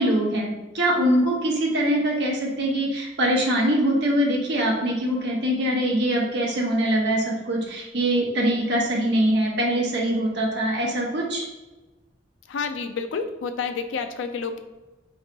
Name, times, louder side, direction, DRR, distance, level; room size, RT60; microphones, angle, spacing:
voice 1, 0.0-11.5, right 1 dB, 65° right, -2 dB, 1.0 m, -23 dB
voice 2, 12.5-14.6, left 5 dB, 85° left, 7 dB, 0.4 m, -29 dB
4.2 x 3.2 x 2.8 m, 1.1 s
head